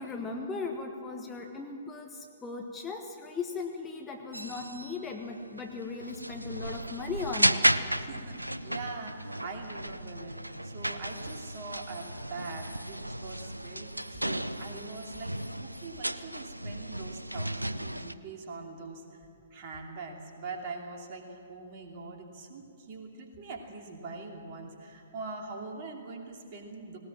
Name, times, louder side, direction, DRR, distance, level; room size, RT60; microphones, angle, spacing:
voice 1, 0.0-7.7, left 4 dB, 15° left, 2 dB, 1.2 m, -38 dB
sound 1, 4.3-18.1, right 1 dB, 85° right, 0.6 m, -34 dB
voice 2, 8.0-19.0 19.5-27.0, right 3 dB, 35° right, 1 dB, 2.8 m, -43 dB
19.0 x 18.5 x 7.4 m, 2.6 s
figure-of-eight pair, 120°, 0 cm